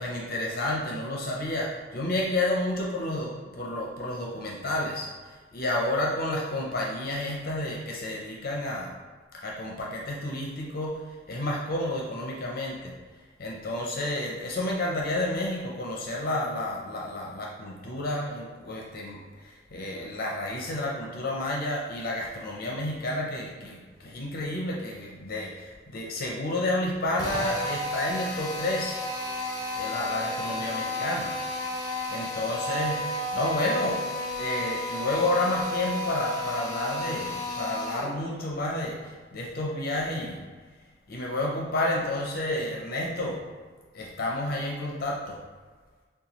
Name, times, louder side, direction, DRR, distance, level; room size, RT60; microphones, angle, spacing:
voice 1, 0.0-8.9 9.3-13.0 13.4-29.0 29.7-31.4 32.1-33.0 33.3-34.1 34.4-40.4 41.1-43.4 43.9-45.4, left 1 dB, 55° left, -2 dB, 0.6 m, -30 dB
Drill, 27.2-38.2, left 1 dB, 20° left, 0.8 m, -32 dB
6.8 x 2.3 x 3.0 m, 1.4 s
head